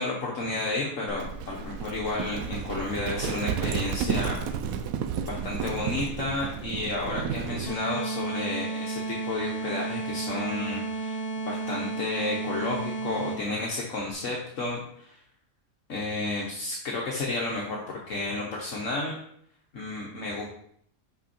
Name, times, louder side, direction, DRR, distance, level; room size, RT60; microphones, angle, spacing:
voice 1, 0.0-4.4 5.3-11.2 11.4-15.2 15.9-19.2 19.7-20.5, left 2 dB, 60° left, -3 dB, 1.4 m, -31 dB
Livestock farm animals working animals, 1.1-7.7, right 7 dB, 75° right, 1.0 m, -32 dB
sound 1, 7.7-13.6, right 3 dB, 45° left, 2.0 m, -32 dB
5.7 x 5.5 x 4.3 m, 0.67 s
omnidirectional pair, 1.5 m